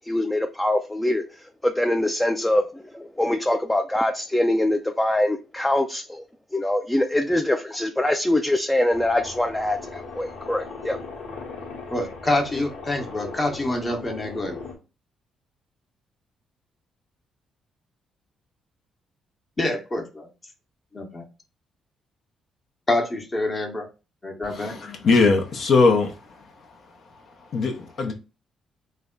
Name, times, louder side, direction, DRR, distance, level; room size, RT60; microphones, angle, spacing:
voice 1, 0.1-6.2 6.5-11.0, left 1 dB, 10° left, 0.3 m, -24 dB
sound 1, 8.9-14.7, left 4 dB, 80° left, 1.1 m, -38 dB
voice 2, 11.9-14.6 19.6-20.3 20.9-21.2 22.9-23.9 24.2-24.8, left 2 dB, 30° left, 0.9 m, -26 dB
voice 3, 24.5-26.1 27.5-28.1, left 4 dB, 60° left, 0.6 m, -20 dB
3.3 x 2.2 x 3.7 m
cardioid pair, 90°, 0 cm